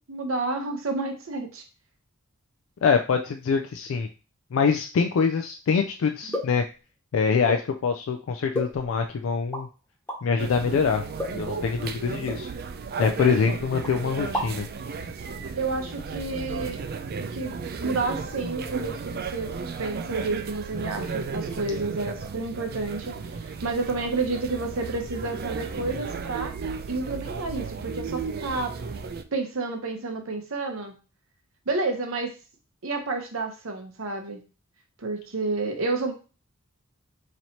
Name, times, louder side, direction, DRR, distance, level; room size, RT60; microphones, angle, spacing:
voice 1, 0.1-1.6 15.6-16.8 17.3-19.5 19.8-26.5 26.9-28.7 29.3-30.9 31.7-32.3 32.8-34.4 35.0-36.1, right 3 dB, 85° right, 4 dB, 0.9 m, -30 dB
voice 2, 2.8-4.1 4.5-6.6 7.1-9.7 10.2-11.0 11.3-12.5 13.0-14.7, left 5 dB, 75° left, 5 dB, 0.4 m, -24 dB
sound 1, 6.3-6.6 7.5-7.7 8.5-9.1 9.5-9.6 10.1-10.2 11.2-11.5 12.3-12.4 13.0-13.6 13.8-13.9 14.2-14.7, left 1 dB, 10° left, 0.9 m, -32 dB
sound 2, 10.4-29.2, right 5 dB, 50° right, 0.4 m, -34 dB
3.1 x 2.8 x 4.1 m, 0.34 s
head